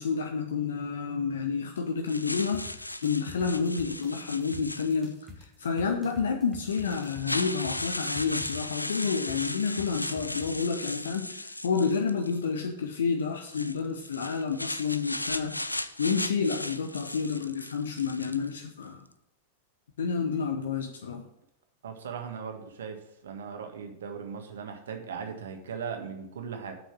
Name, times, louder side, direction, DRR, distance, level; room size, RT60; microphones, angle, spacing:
voice 1, 0.0-19.0 20.0-21.2, left 5 dB, 65° left, 5 dB, 0.8 m, -30 dB
sound 1, 2.1-5.3 6.1-6.2 6.7-12.4 13.4-18.6, left 1 dB, 85° left, 0.4 m, -36 dB
sound 2, 2.5-10.5, left 1 dB, 10° right, 1.8 m, -48 dB
voice 2, 21.8-23.0 23.2-26.7, right 6 dB, 65° right, 5 dB, 1.6 m, -38 dB
8.0 x 6.2 x 7.5 m, 0.82 s
figure-of-eight pair, 90°, 0 cm